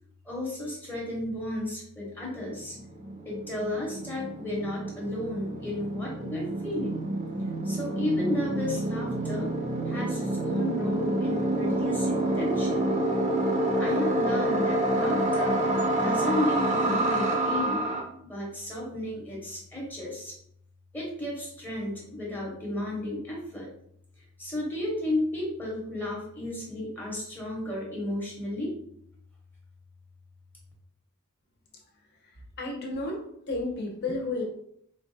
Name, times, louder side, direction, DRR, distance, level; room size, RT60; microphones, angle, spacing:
voice 1, 0.3-2.8 3.2-7.1 7.6-9.5 9.9-12.9 13.8-15.6 15.9-17.9 18.2-20.3 20.9-23.7 24.4-28.7, left 1 dB, 10° left, -4 dB, 0.8 m, -33 dB
sound 1, 2.5-2.6 2.8-18.0, right 1 dB, 35° right, 0.6 m, -28 dB
voice 2, 32.2-33.2 33.5-34.4, left 2 dB, 50° left, 0 dB, 0.8 m, -32 dB
4.0 x 2.2 x 2.6 m, 0.69 s
head